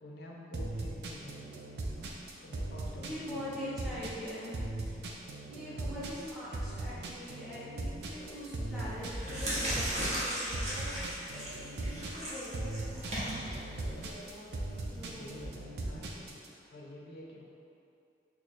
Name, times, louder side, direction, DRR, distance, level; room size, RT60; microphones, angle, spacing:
voice 1, 0.0-1.6 2.4-3.5 5.7-6.0 14.6-17.4, left 1 dB, 60° left, -3 dB, 0.4 m, -50 dB
sound 1, 0.5-16.5, right 2 dB, 65° right, 0.4 m, -39 dB
voice 2, 2.9-5.1 5.5-11.0 11.3-14.5 14.9-15.4, left 1 dB, ahead, -9 dB, 0.7 m, -43 dB
sound 2, 8.2-8.5 9.0-15.5, right 1 dB, 40° right, 0.8 m, -37 dB
3.1 x 2.3 x 4.1 m, 2.6 s
head